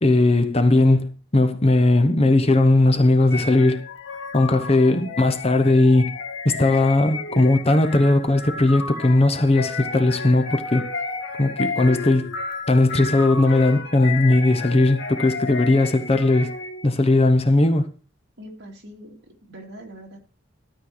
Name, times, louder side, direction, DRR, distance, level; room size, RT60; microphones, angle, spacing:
voice 1, 0.0-3.8 4.3-6.1 6.4-10.8 11.4-12.3 12.7-16.5 16.8-17.9, left 2 dB, 30° left, 0.9 m, -18 dB
sound 1, 3.3-17.0, left 4 dB, 65° left, 1.6 m, -32 dB
voice 2, 18.4-20.2, equal, 55° right, 2.6 m, -42 dB
13.0 x 4.4 x 7.8 m
head